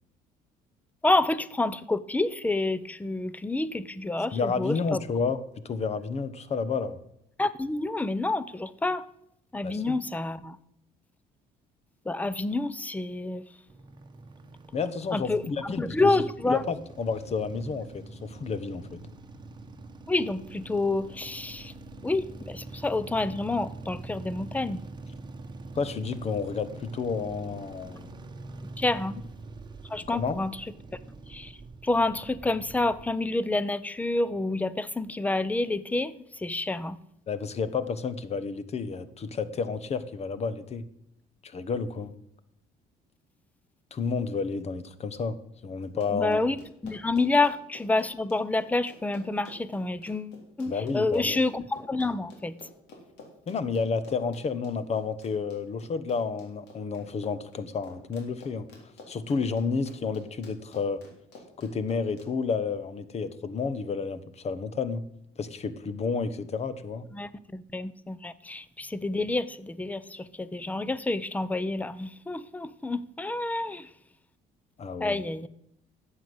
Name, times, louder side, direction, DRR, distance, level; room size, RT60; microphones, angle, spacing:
voice 1, 1.0-5.0 7.4-9.0 9.5-10.6 12.1-13.4 15.1-16.6 20.1-21.7 22.0-24.9 28.8-29.1 29.9-30.7 31.3-31.5 31.8-37.0 46.1-46.6 46.8-52.6 67.1-73.9 75.0-75.5, left 2 dB, 10° left, 16 dB, 0.7 m, -28 dB
voice 2, 4.3-7.0 9.6-10.0 14.7-19.0 25.7-28.1 30.1-30.4 37.3-40.9 41.4-42.1 43.9-45.4 45.6-46.4 50.7-51.4 53.5-58.7 59.1-61.0 61.6-65.0 65.4-67.1 74.8-75.2, left 5 dB, 40° left, 14 dB, 1.2 m, -31 dB
sound 1, 13.7-33.1, right 2 dB, 25° right, 1.3 m, -44 dB
Run, 45.8-62.3, left 3 dB, 85° left, 3.6 m, -50 dB
11.5 x 8.1 x 7.9 m, 0.78 s
cardioid pair, 110°, 17 cm